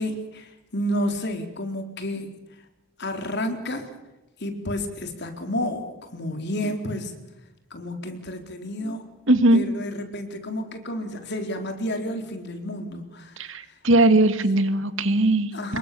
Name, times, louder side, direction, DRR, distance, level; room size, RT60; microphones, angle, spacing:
voice 1, 0.0-2.3 3.0-3.9 4.4-7.1 7.7-9.1 9.5-13.8 15.5-15.8, left 1 dB, 55° left, 5 dB, 4.2 m, -31 dB
voice 2, 9.3-9.6 13.5-15.5, right 2 dB, 65° right, 10 dB, 2.1 m, -19 dB
27.5 x 23.0 x 7.1 m, 0.97 s
head